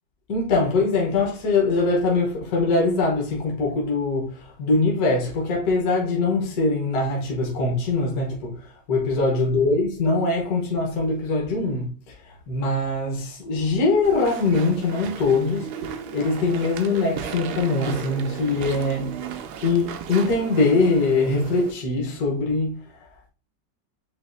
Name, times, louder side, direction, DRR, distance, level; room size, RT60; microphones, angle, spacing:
voice 1, 0.3-8.6 8.9-19.4 19.6-22.7, left 3 dB, 55° left, 1.5 m, -22 dB
Walk footsteps / Chatter / Squeak, 14.0-21.7, right 8 dB, 70° right, 1.0 m, -35 dB
7.5 x 2.6 x 2.6 m
omnidirectional pair, 2.0 m